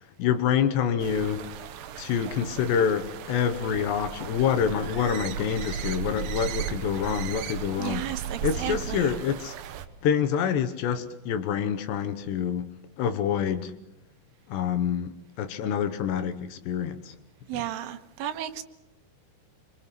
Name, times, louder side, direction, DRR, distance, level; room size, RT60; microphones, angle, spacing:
voice 1, 0.2-1.4 2.0-9.6 10.0-13.8 14.5-17.2 17.5-17.7, left 8 dB, 70° left, 3.0 m, -27 dB
sound 1, 1.0-9.9, right 9 dB, 70° right, 2.2 m, -36 dB
voice 2, 7.8-9.1 17.5-18.6, right 12 dB, 85° right, 3.8 m, -33 dB
26.0 x 25.0 x 5.9 m
omnidirectional pair, 5.5 m